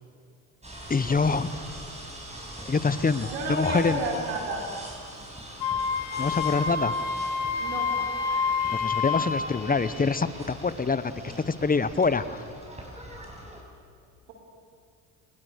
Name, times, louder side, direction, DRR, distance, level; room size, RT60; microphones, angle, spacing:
sound 1, 0.6-13.6, right 1 dB, 15° right, 7.0 m, -42 dB
voice 1, 0.9-1.5 2.7-4.0 6.2-6.9 8.7-11.1 11.4-12.5, left 4 dB, 20° left, 14 dB, 1.1 m, -25 dB
voice 2, 3.3-4.6 7.6-7.9, right 2 dB, 80° right, 0 dB, 4.5 m, -30 dB
Wind instrument woodwind instrument, 5.6-9.3, left 5 dB, 65° left, 2.2 m, -28 dB
30.0 x 22.0 x 6.6 m, 2.4 s
hypercardioid pair, 70°, 41 cm